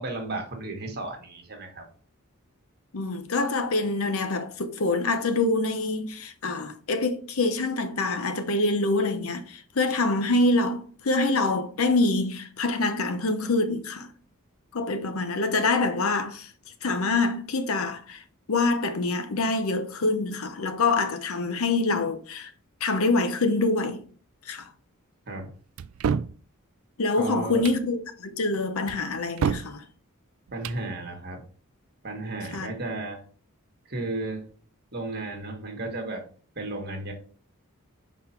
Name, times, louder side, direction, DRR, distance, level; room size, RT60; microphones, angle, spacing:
voice 1, 0.0-1.9 25.3-25.5 27.2-27.6 30.5-31.4 32.0-33.2 33.9-34.4 34.9-36.2 36.5-37.1, right 2 dB, 45° right, 1.5 m, -34 dB
voice 2, 2.9-14.1 14.7-16.5 16.8-18.2 18.5-22.5 22.8-24.0 24.4-24.7 27.0-29.8 32.5-32.7, left 3 dB, 70° left, 0.8 m, -25 dB
sound 1, 25.8-26.4 27.5-27.8 28.9-29.7 30.5-30.8, right 6 dB, 65° right, 0.3 m, -28 dB
5.7 x 4.2 x 4.3 m
head